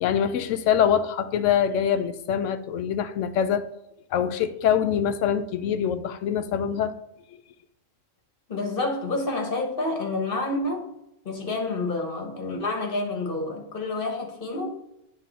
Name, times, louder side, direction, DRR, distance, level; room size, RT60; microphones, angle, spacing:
voice 1, 0.0-3.7 4.1-6.9, left 8 dB, 75° left, 11 dB, 0.9 m, -24 dB
voice 2, 8.5-10.9 11.2-14.7, left 2 dB, 45° left, 2 dB, 1.3 m, -28 dB
9.1 x 3.3 x 4.0 m, 0.85 s
omnidirectional pair, 1.4 m